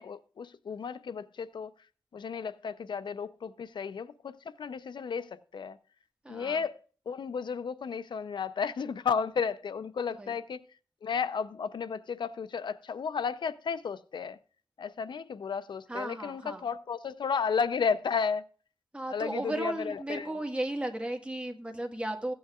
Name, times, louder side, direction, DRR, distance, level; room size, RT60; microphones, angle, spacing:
voice 1, 0.0-1.7 2.1-5.8 6.3-6.7 7.1-10.6 11.0-14.4 14.8-18.4 19.1-20.3, left 6 dB, 80° left, 0.5 m, -33 dB
voice 2, 6.2-6.6 10.2-10.4 15.9-16.7 18.9-22.3, right 1 dB, 15° right, 1.6 m, -35 dB
15.5 x 9.2 x 2.4 m
wide cardioid pair, 110°, 8 cm